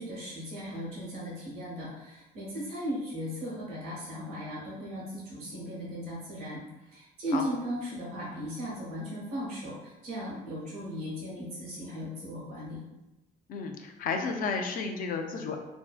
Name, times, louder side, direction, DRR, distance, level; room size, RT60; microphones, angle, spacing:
voice 1, 0.0-12.8, equal, 65° right, -7 dB, 0.9 m, -37 dB
voice 2, 13.5-15.6, left 4 dB, 55° left, 5 dB, 0.4 m, -32 dB
2.6 x 2.1 x 2.3 m, 1.0 s
cardioid pair, 110°, 17 cm